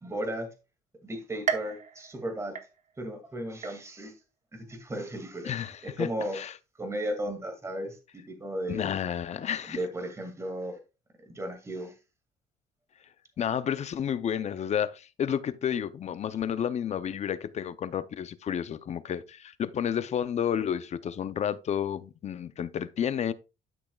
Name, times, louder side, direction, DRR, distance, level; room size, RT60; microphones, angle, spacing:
voice 1, 0.0-0.5 1.0-2.6 3.0-4.1 4.5-6.4 6.8-8.9 9.7-10.8 11.3-12.0, right 1 dB, 15° right, 2.2 m, -35 dB
sound 1, 1.5-3.2 3.6-4.2 4.7-4.8 5.8-5.9, right 6 dB, 45° right, 1.0 m, -35 dB
voice 2, 5.5-6.1 6.3-6.5 8.7-9.8 13.4-23.3, left 9 dB, 40° left, 0.6 m, -31 dB
12.0 x 6.1 x 2.3 m
cardioid pair, 110°, 17 cm